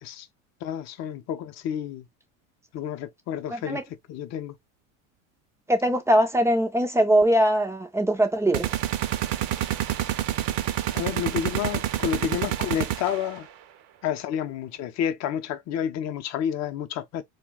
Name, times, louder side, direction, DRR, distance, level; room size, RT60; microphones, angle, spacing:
voice 1, 0.6-2.1 2.7-3.8 4.1-4.5 10.9-13.5 14.0-17.2, left 9 dB, 40° left, 0.6 m, -30 dB
voice 2, 3.5-3.8 5.7-8.8, right 1 dB, 5° right, 0.4 m, -21 dB
sound 1, 8.5-13.4, right 12 dB, 55° right, 0.6 m, -28 dB
2.2 x 2.2 x 3.8 m
hypercardioid pair, 95°, 42 cm